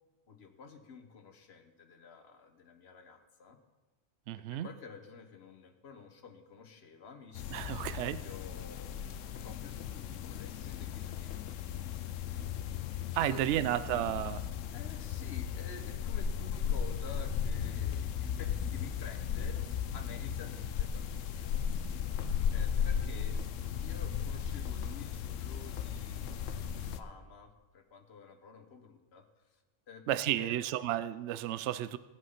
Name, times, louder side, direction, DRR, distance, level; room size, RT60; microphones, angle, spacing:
voice 1, 0.3-3.6 4.5-11.4 13.3-13.7 14.7-22.1 22.5-23.4 23.8-29.6 29.9-30.5, left 5 dB, 55° left, 6 dB, 1.4 m, -51 dB
voice 2, 4.3-4.7 7.5-8.2 13.1-14.4 30.1-32.0, right 12 dB, 70° right, 15 dB, 0.8 m, -32 dB
sound 1, 7.3-27.0, left 8 dB, 85° left, 1.0 m, -36 dB
17.5 x 8.2 x 5.7 m, 1.2 s
omnidirectional pair, 1.3 m